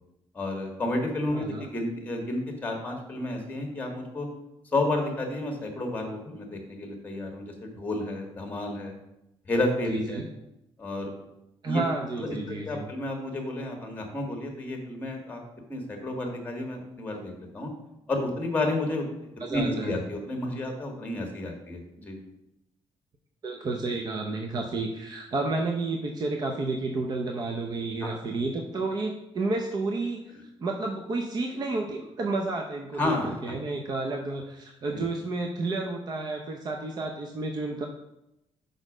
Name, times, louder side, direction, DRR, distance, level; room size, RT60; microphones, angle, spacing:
voice 1, 0.3-4.3 4.7-8.9 9.5-10.2 10.8-11.2 11.6-11.9 12.2-15.4 15.7-17.7 18.1-22.2 28.0-28.2 33.0-33.5 34.9-35.1, left 1 dB, 15° left, 2 dB, 1.5 m, -31 dB
voice 2, 1.3-1.7 9.9-10.3 11.6-12.9 19.4-20.0 23.4-30.3 30.6-33.1 33.4-37.9, right 3 dB, 40° right, 2 dB, 0.7 m, -31 dB
6.4 x 5.2 x 4.9 m, 0.88 s
cardioid pair, 145°, 11 cm